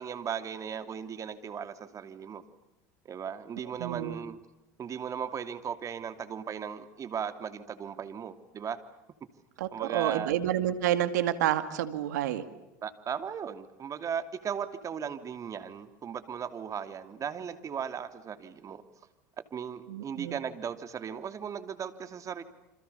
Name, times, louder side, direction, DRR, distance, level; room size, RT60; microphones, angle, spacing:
voice 1, 0.0-2.4 3.0-4.4 4.8-8.8 9.7-10.3 12.8-18.8 19.5-22.4, right 7 dB, 35° right, 9 dB, 2.9 m, -37 dB
voice 2, 3.8-4.2 9.6-12.4 19.9-20.4, right 12 dB, 80° right, 10 dB, 2.3 m, -29 dB
28.5 x 27.0 x 7.0 m, 0.92 s
hypercardioid pair, 95°, 9 cm